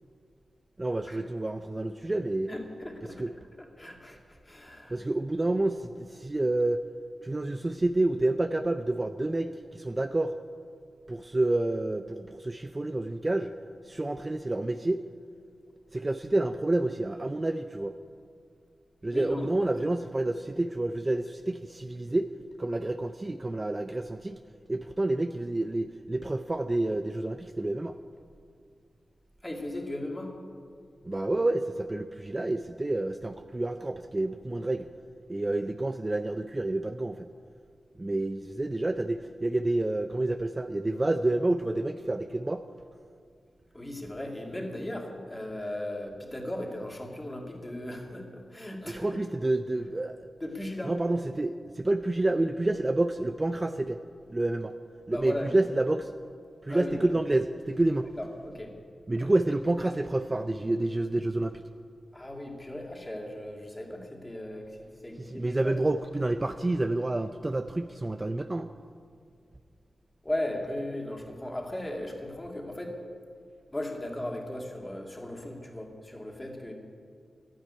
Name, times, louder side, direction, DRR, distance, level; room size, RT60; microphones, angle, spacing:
voice 1, 0.8-2.5 3.2-3.3 4.9-6.8 7.2-10.3 11.1-13.5 13.8-15.0 15.9-17.9 19.0-22.3 22.6-24.4 24.7-28.0 31.0-34.9 35.3-37.3 38.0-42.6 48.9-50.3 50.8-54.0 54.3-54.7 55.1-56.1 56.6-58.1 59.1-61.6 65.2-68.7, right 2 dB, 25° right, 8 dB, 0.5 m, -29 dB
voice 2, 2.5-3.2 3.6-5.0 19.1-19.5 29.4-30.3 43.7-49.2 50.4-50.9 55.1-55.5 56.7-57.0 58.2-58.7 59.2-59.3 62.1-65.8 70.2-73.0 73.7-76.7, left 1 dB, 15° left, 1 dB, 2.3 m, -37 dB
12.0 x 10.5 x 9.8 m, 2.2 s
wide cardioid pair, 100°, 0 cm